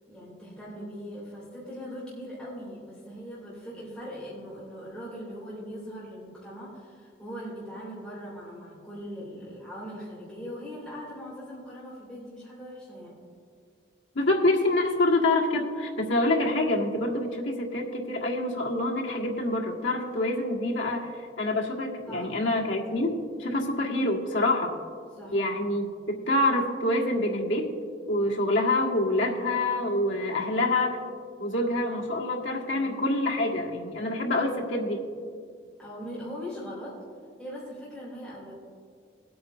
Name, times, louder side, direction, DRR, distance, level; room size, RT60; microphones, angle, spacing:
voice 1, 0.1-13.2 22.1-22.3 25.1-25.3 32.7-32.9 35.8-37.0 37.4-38.5, equal, 5° left, -9 dB, 2.7 m, -40 dB
voice 2, 14.2-24.7 25.3-27.7 28.1-31.0 31.4-35.0, left 2 dB, 90° left, -1 dB, 1.6 m, -26 dB
20.5 x 8.5 x 2.6 m, 2.1 s
head